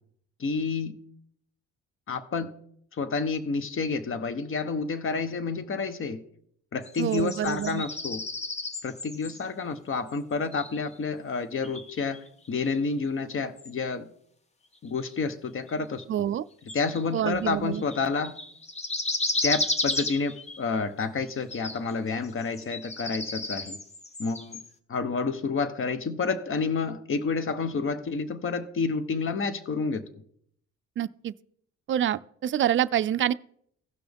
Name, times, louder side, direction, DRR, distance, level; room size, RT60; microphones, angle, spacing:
voice 1, 0.4-1.0 2.1-2.5 2.9-6.2 6.7-8.2 8.8-14.1 14.8-16.3 16.7-18.3 19.4-23.8 24.2-24.6 24.9-30.0, left 4 dB, 45° left, 1.0 m, -29 dB
sound 1, 6.8-9.4 10.1-10.2 10.5-10.9 11.6-12.9 13.6-13.7 15.1-15.2 15.7-15.8 16.7-17.3 17.7-20.7 21.2-21.9 22.2-24.7, left 2 dB, 20° left, 0.9 m, -33 dB
voice 2, 7.0-7.8 16.1-16.4 17.1-17.8 31.0-31.3 31.9-33.3, right 11 dB, 40° right, 0.4 m, -27 dB
16.0 x 6.0 x 3.5 m
cardioid pair, 90°, 30 cm